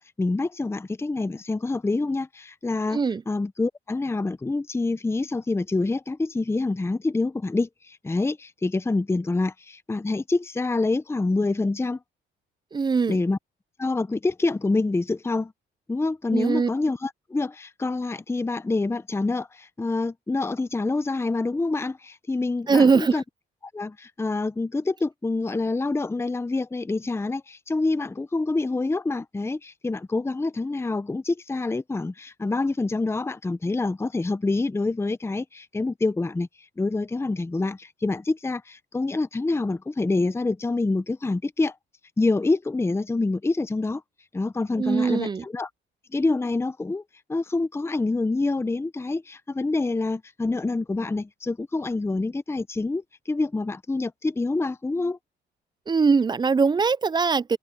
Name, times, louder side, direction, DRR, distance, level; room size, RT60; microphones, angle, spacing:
voice 1, 0.0-3.0 3.3-12.0 13.1-13.4 13.8-15.5 15.9-23.2 23.6-36.5 36.8-41.7 42.2-44.0 44.3-45.7 46.1-47.0 47.3-55.2, left 3 dB, 15° left, 0.7 m, -26 dB
voice 2, 2.9-3.2 12.7-13.2 16.3-16.7 22.7-23.2 44.8-45.4 55.9-57.6, right 5 dB, 20° right, 0.4 m, -21 dB
cardioid pair, 90°, 20 cm